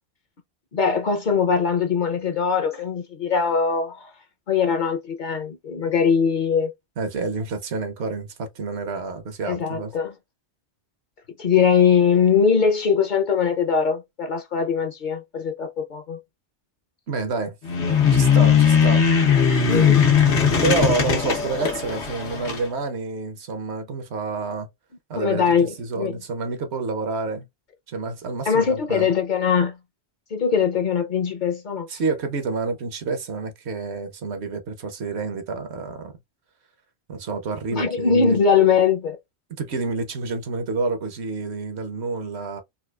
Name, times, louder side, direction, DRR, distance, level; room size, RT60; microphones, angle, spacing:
voice 1, 0.7-4.1 4.5-6.7 9.4-10.1 11.4-16.2 19.7-20.1 25.1-26.2 28.5-29.8 30.3-31.9 37.7-39.2, left 6 dB, 50° left, 0.7 m, -21 dB
voice 2, 7.0-9.9 17.1-17.5 18.1-19.1 20.6-24.7 25.1-27.5 27.9-29.1 31.9-36.1 37.1-38.4 39.6-42.6, right 4 dB, 75° right, 1.1 m, -28 dB
sound 1, 17.6-22.6, left 7 dB, 85° left, 1.3 m, -18 dB
4.1 x 2.4 x 2.3 m
omnidirectional pair, 1.1 m